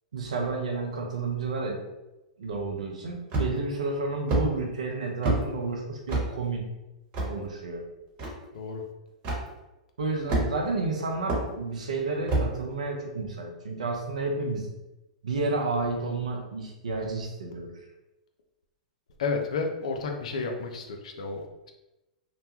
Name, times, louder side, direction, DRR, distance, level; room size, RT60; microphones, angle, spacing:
voice 1, 0.1-1.8 2.4-6.6 7.3-7.9 10.0-14.7 15.2-17.7, right 3 dB, 75° right, 1 dB, 0.6 m, -31 dB
sound 1, 3.3-3.7 4.3-4.5 5.2-5.4 6.1-6.3 7.1-7.3 8.2-8.3 9.2-9.4 10.3-10.7 11.3-11.4 12.3-12.5, right 2 dB, 40° right, 1.1 m, -26 dB
voice 2, 19.2-21.7, left 4 dB, 65° left, 3 dB, 0.5 m, -31 dB
2.9 x 2.2 x 2.8 m, 0.99 s
figure-of-eight pair, 105°, 4 cm